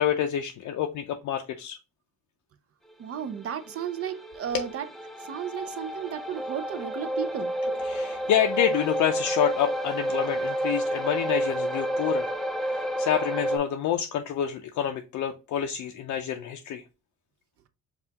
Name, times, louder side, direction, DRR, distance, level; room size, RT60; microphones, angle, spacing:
voice 1, 0.0-1.8 4.5-4.6 7.6-12.3 12.7-16.8, left 9 dB, 60° left, 0.5 m, -28 dB
voice 2, 3.0-4.9 5.2-7.5, right 8 dB, 45° right, 0.5 m, -34 dB
sound 1, 3.2-13.6, right 1 dB, ahead, 0.3 m, -30 dB
5.4 x 2.4 x 2.8 m
cardioid pair, 130°, 33 cm